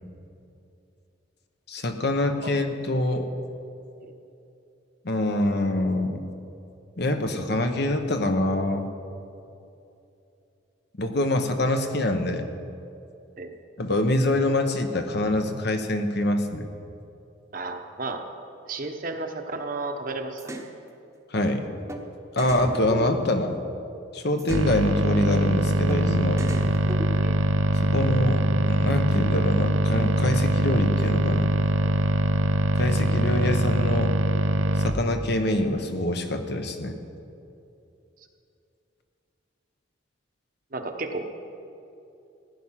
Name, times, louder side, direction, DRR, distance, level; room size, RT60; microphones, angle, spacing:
voice 1, 1.7-3.3 5.0-6.2 7.0-8.9 11.0-12.5 13.8-16.7 21.3-21.6 22.3-23.5 24.1-26.4 27.8-31.5 32.8-34.1 34.8-37.0, left 1 dB, 55° left, 6 dB, 1.0 m, -25 dB
voice 2, 17.5-18.2 18.7-20.6 27.2-27.4 40.7-41.3, right 3 dB, 45° right, 5 dB, 1.0 m, -33 dB
sound 1, 20.4-20.7 21.9-22.0 22.4-23.8 24.4-24.7 25.9-26.0 26.4-27.5, equal, 15° right, 1.0 m, -36 dB
sound 2, 24.5-34.9, right 1 dB, 75° right, 0.7 m, -23 dB
15.5 x 9.8 x 5.8 m, 2.7 s
head